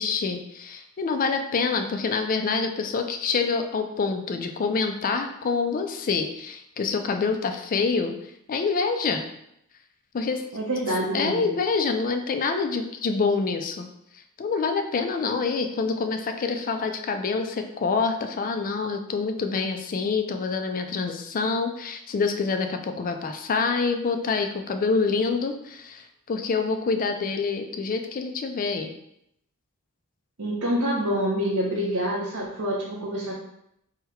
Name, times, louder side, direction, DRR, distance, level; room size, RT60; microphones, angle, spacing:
voice 1, 0.0-8.1 8.5-9.3 10.1-10.4 11.1-13.9 14.4-28.9, left 4 dB, 40° left, 6 dB, 0.4 m, -26 dB
voice 2, 10.5-11.5 30.4-33.3, equal, 80° right, -5 dB, 0.8 m, -26 dB
3.7 x 2.2 x 4.4 m, 0.78 s
head